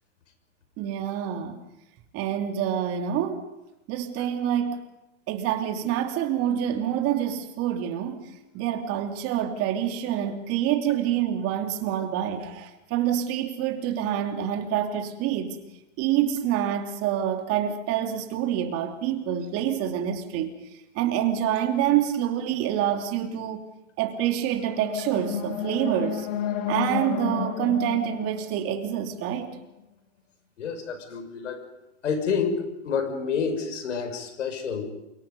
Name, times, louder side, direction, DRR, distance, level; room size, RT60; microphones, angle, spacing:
voice 1, 0.8-1.6 2.1-3.4 3.9-4.9 5.3-8.3 8.5-15.6 16.0-20.5 20.9-23.7 24.0-26.3 26.7-29.6, right 10 dB, 40° right, 3.0 m, -27 dB
sound 1, 24.4-29.5, left 8 dB, 55° left, 3.6 m, -32 dB
voice 2, 30.6-31.6 32.0-34.9, left 6 dB, 80° left, 6.1 m, -28 dB
28.5 x 25.5 x 5.4 m
hypercardioid pair, 120°, 36 cm